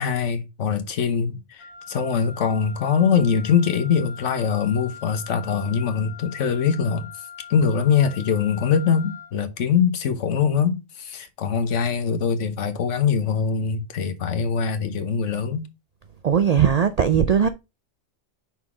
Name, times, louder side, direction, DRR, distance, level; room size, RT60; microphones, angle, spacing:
voice 1, 0.0-7.1 7.5-15.7, left 6 dB, 80° left, 1.2 m, -23 dB
Wind instrument woodwind instrument, 1.6-9.4, left 6 dB, 25° left, 0.9 m, -42 dB
voice 2, 16.2-17.5, right 8 dB, 65° right, 0.4 m, -18 dB
5.8 x 4.0 x 4.7 m
omnidirectional pair, 1.2 m